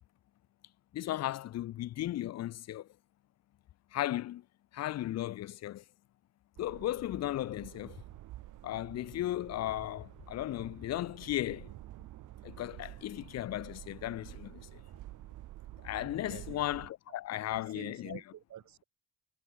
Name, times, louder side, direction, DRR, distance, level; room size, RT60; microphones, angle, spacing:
voice 1, 0.9-2.9 3.9-4.4 4.7-5.8 6.6-8.0 8.6-11.7 12.4-14.8 15.8-18.2, left 14 dB, 60° left, 0.6 m, -36 dB
sound 1, 6.6-16.9, right 15 dB, 85° right, 2.7 m, -50 dB
voice 2, 16.3-16.7 17.1-17.2 17.5-18.8, right 11 dB, 65° right, 2.0 m, -49 dB
cardioid pair, 90°, 30 cm